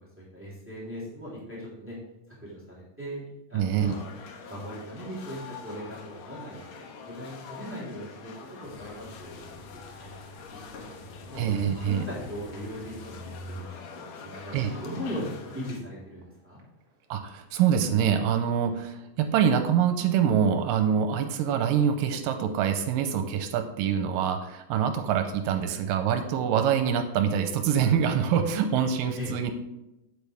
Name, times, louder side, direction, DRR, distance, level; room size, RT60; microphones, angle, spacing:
voice 1, 0.2-2.0 2.3-4.0 4.5-6.8 7.1-8.3 8.6-10.1 10.5-11.4 11.8-13.6 14.1-16.6 29.1-29.3, equal, 5° right, -7 dB, 3.1 m, -39 dB
voice 2, 3.5-4.0 11.4-12.0 14.5-14.7 17.1-29.5, right 8 dB, 85° right, 7 dB, 2.4 m, -25 dB
sound 1, 3.8-15.8, left 5 dB, 65° left, 2.1 m, -45 dB
sound 2, 8.6-13.6, left 1 dB, 90° left, 3.0 m, -46 dB
sound 3, 11.3-12.9 13.2-13.6 14.5-17.6, right 2 dB, 50° right, 1.2 m, -49 dB
9.5 x 8.4 x 3.4 m, 0.93 s
omnidirectional pair, 3.9 m